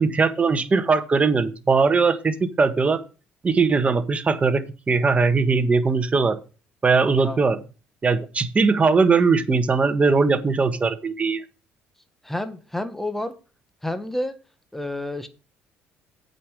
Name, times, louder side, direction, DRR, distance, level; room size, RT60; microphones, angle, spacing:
voice 1, 0.0-3.0 3.4-6.4 6.8-7.6 8.0-11.4, right 4 dB, 30° right, 1.4 m, -20 dB
voice 2, 12.2-13.3 13.8-14.3 14.7-15.3, left 1 dB, 5° left, 1.4 m, -29 dB
8.4 x 5.5 x 6.4 m
supercardioid pair, 85°, 5 cm